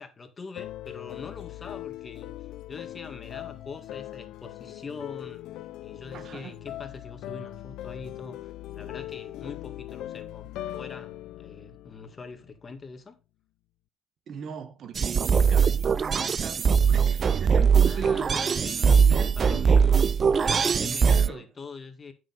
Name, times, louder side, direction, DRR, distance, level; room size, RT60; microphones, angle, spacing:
voice 1, 0.0-13.2 17.8-22.1, left 4 dB, 30° left, 1.9 m, -43 dB
sound 1, 0.6-12.7, left 14 dB, 75° left, 0.5 m, -40 dB
voice 2, 6.1-6.6 14.3-19.7 21.1-21.5, right 7 dB, 55° right, 1.4 m, -40 dB
sound 2, 15.0-21.3, right 6 dB, 40° right, 0.3 m, -21 dB
8.8 x 6.4 x 4.1 m
cardioid pair, 95°, 0 cm